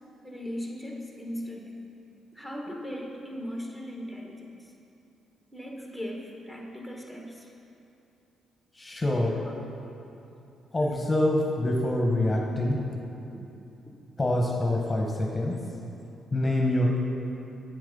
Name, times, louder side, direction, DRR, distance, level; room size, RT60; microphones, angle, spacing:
voice 1, 0.2-1.7 2.3-4.6 5.5-7.5 9.4-9.5 13.3-13.4, equal, 10° right, -1 dB, 1.4 m, -38 dB
voice 2, 8.8-9.3 10.7-12.8 14.2-15.5 16.3-17.0, left 1 dB, 20° left, -1 dB, 1.1 m, -25 dB
8.1 x 7.5 x 5.4 m, 2.9 s
cardioid pair, 90°, 0 cm